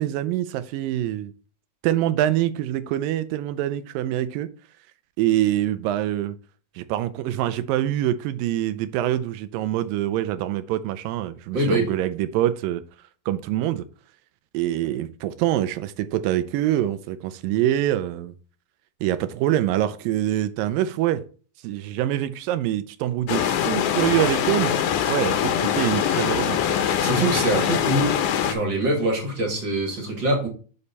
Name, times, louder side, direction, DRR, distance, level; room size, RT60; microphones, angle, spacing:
voice 1, 0.0-1.3 1.8-4.5 5.2-6.4 6.8-12.8 13.3-13.9 14.5-18.3 19.0-21.2 21.6-24.7 25.1-26.6, right 13 dB, 80° right, 2.1 m, -25 dB
voice 2, 11.5-11.9 27.0-28.2 28.4-30.5, right 1 dB, 35° right, 2.5 m, -23 dB
sound 1, 23.3-28.5, left 9 dB, 75° left, 2.0 m, -23 dB
6.9 x 5.5 x 4.1 m
omnidirectional pair, 4.3 m